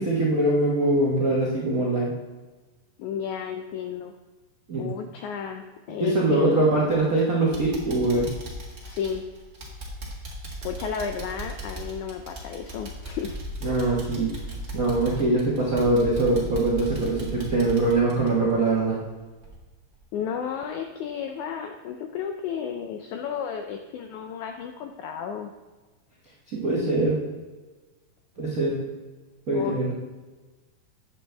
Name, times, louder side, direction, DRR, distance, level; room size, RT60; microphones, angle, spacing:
voice 1, 0.0-2.1 4.7-4.9 6.0-8.3 13.6-14.3 14.7-19.0 26.5-27.2 28.4-28.8 29.5-29.9, right 2 dB, 80° right, -5 dB, 0.7 m, -23 dB
voice 2, 3.0-4.1 4.8-6.5 8.8-9.2 10.6-13.4 20.1-25.5 29.5-29.8, left 7 dB, 85° left, 5 dB, 1.7 m, -32 dB
sound 1, 6.9-7.2 7.5-19.1 19.4-19.6 20.0-20.1, right 1 dB, 45° right, 0.8 m, -37 dB
9.5 x 7.5 x 3.4 m, 1.3 s
omnidirectional pair, 4.0 m